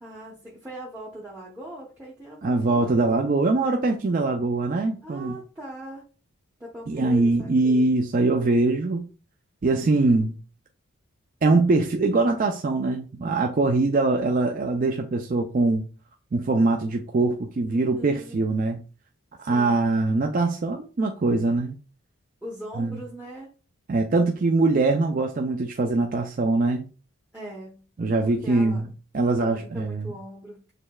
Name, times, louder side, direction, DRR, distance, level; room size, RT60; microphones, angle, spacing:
voice 1, 0.0-3.5 5.0-6.0 6.6-7.9 17.9-18.4 19.4-19.9 22.4-23.5 27.3-27.8 28.2-28.9 29.4-30.6, right 1 dB, 10° right, 0.7 m, -40 dB
voice 2, 2.4-5.4 6.9-9.1 9.6-10.4 11.4-15.9 16.3-18.8 19.4-21.8 22.7-23.0 23.9-26.9 28.0-28.9 29.1-30.1, right 3 dB, 40° right, 0.3 m, -22 dB
6.5 x 3.2 x 2.2 m
head